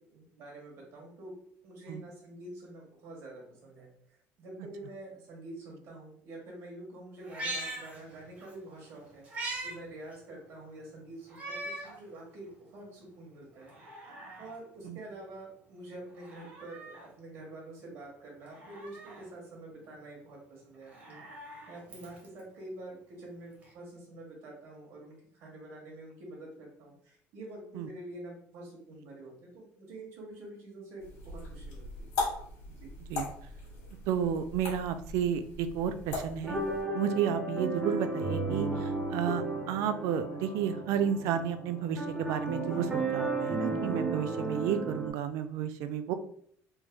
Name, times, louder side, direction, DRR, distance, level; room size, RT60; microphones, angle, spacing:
voice 1, 0.0-1.3 1.6-3.9 4.4-13.8 14.4-21.2 21.7-32.2 32.6-32.9, right 2 dB, 55° right, -2 dB, 1.4 m, -47 dB
Meow, 7.2-8.5 8.9-9.8 10.1-10.2 11.3-12.0 12.5-12.6 13.6-14.6 16.1-17.1 18.4-19.3 20.7-22.4 23.6-23.7, right 1 dB, 25° right, 0.9 m, -42 dB
sound 1, 31.0-36.8, left 3 dB, 90° left, 1.4 m, -39 dB
voice 2, 34.1-36.6 36.9-46.1, right 8 dB, 70° right, 9 dB, 0.3 m, -32 dB
sound 2, 36.4-45.1, right 2 dB, 10° right, 0.6 m, -34 dB
3.4 x 3.0 x 2.2 m, 0.63 s
cardioid pair, 155°, 5 cm